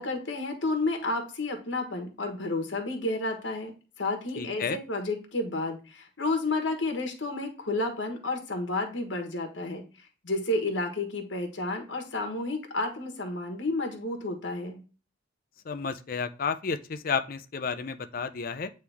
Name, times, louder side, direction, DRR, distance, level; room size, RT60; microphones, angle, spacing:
voice 1, 0.0-3.7 4.0-9.8 10.2-14.8, left 2 dB, 80° left, 4 dB, 1.3 m, -31 dB
voice 2, 4.4-4.8 15.7-18.7, left 5 dB, 50° left, 11 dB, 0.5 m, -31 dB
8.6 x 3.2 x 3.4 m, 0.35 s
head